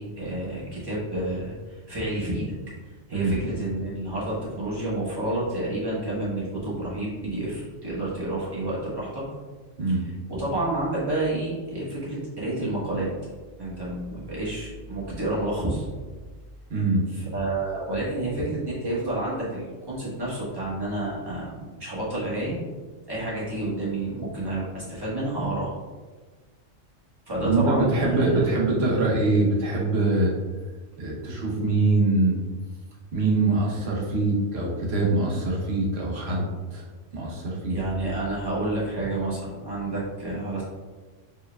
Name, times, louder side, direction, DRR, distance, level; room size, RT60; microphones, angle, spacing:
voice 1, 0.0-2.5 2.8-9.2 9.9-13.1 13.6-15.9 17.1-22.6 23.1-25.7 27.3-28.4 37.7-40.6, right 1 dB, 20° right, -8 dB, 1.3 m, -29 dB
voice 2, 9.8-10.1 16.7-17.0 27.4-30.3 31.0-32.4 33.1-36.8 37.1-37.8, right 2 dB, 60° right, -3 dB, 1.1 m, -23 dB
4.5 x 3.2 x 2.3 m, 1.3 s
omnidirectional pair, 1.3 m